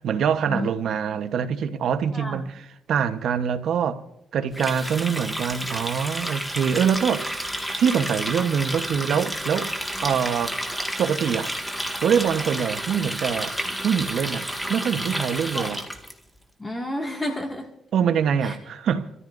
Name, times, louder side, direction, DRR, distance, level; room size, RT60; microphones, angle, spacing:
voice 1, 0.0-4.0 4.3-9.7 10.0-10.6 11.0-11.5 12.0-13.5 13.8-15.8 17.9-19.1, right 7 dB, 70° right, 1.0 m, -24 dB
voice 2, 2.1-2.5 15.5-15.7 16.6-17.7 18.4-18.6, left 1 dB, 20° left, 2.0 m, -30 dB
Water tap faucet, 4.5-16.1, equal, ahead, 1.9 m, -31 dB
26.5 x 14.0 x 2.6 m
cardioid pair, 80°, 0 cm